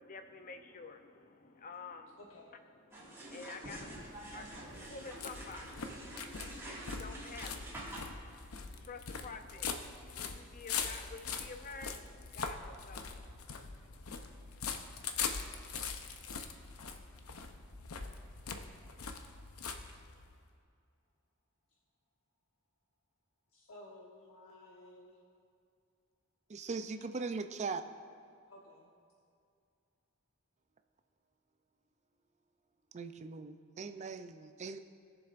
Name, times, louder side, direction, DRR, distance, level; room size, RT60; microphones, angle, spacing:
voice 1, 0.0-2.2 2.9-14.9, left 4 dB, 40° left, 7 dB, 0.6 m, -51 dB
voice 2, 2.2-2.6 23.5-25.2 27.0-27.1 28.5-28.9, left 1 dB, 70° left, -3 dB, 1.1 m, -55 dB
sound 1, 2.9-8.0, right 1 dB, 15° right, 2.0 m, -47 dB
sound 2, 3.9-20.4, left 5 dB, 85° left, 0.7 m, -42 dB
voice 3, 26.5-27.8 32.9-34.8, right 4 dB, 35° right, 8 dB, 0.4 m, -40 dB
19.5 x 7.1 x 2.5 m, 2.4 s
head